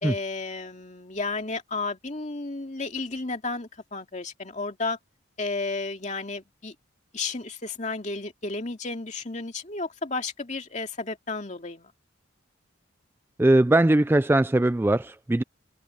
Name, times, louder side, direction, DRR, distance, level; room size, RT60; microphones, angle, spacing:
voice 1, 0.0-5.0 5.4-6.7 7.1-11.9, left 3 dB, 35° left, 2.4 m, -32 dB
voice 2, 13.4-15.4, right 1 dB, 10° right, 0.3 m, -20 dB
open air
head